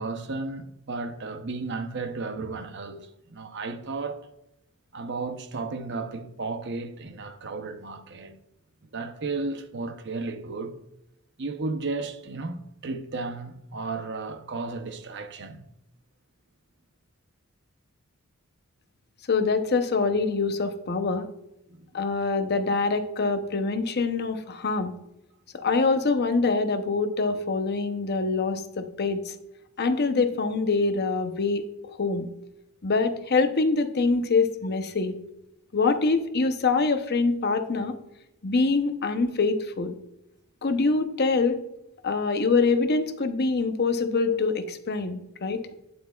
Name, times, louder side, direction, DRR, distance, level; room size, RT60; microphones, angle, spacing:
voice 1, 0.0-4.2 4.9-8.3 8.9-10.8 11.4-15.7 21.8-21.9, right 3 dB, 55° right, 0.8 m, -34 dB
voice 2, 19.3-21.3 21.9-24.9 25.5-29.3 29.8-32.3 32.8-35.1 35.7-38.0 38.4-39.9 40.6-41.6 42.0-45.6, left 4 dB, 50° left, 0.7 m, -25 dB
9.5 x 7.7 x 2.3 m
head